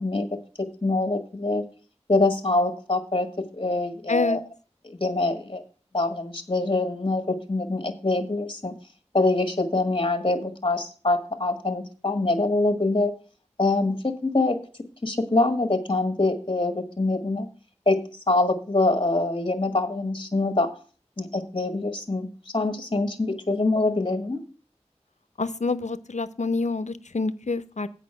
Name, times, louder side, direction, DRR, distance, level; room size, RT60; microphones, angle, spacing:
voice 1, 0.0-1.6 2.1-4.4 4.8-5.6 5.9-8.7 9.1-13.1 13.6-14.6 15.0-17.5 17.8-18.0 18.3-20.7 21.2-24.4, left 2 dB, 45° left, 6 dB, 1.6 m, -24 dB
voice 2, 4.1-4.4 25.4-27.9, left 3 dB, 85° left, 13 dB, 0.6 m, -27 dB
8.4 x 5.2 x 7.5 m, 0.38 s
wide cardioid pair, 40°, 12 cm